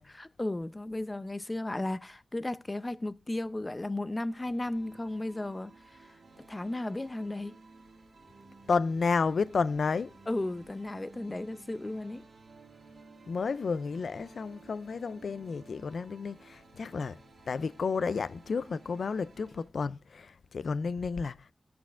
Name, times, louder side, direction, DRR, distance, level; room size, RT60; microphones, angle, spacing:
voice 1, 0.1-7.6 10.3-12.2, left 2 dB, 25° left, 0.6 m, -35 dB
sound 1, 4.3-19.7, right 3 dB, 80° right, 1.8 m, -55 dB
voice 2, 8.7-10.1 13.3-17.2 17.5-21.4, left 5 dB, 85° left, 0.3 m, -31 dB
14.5 x 6.0 x 2.4 m
wide cardioid pair, 65°, 0 cm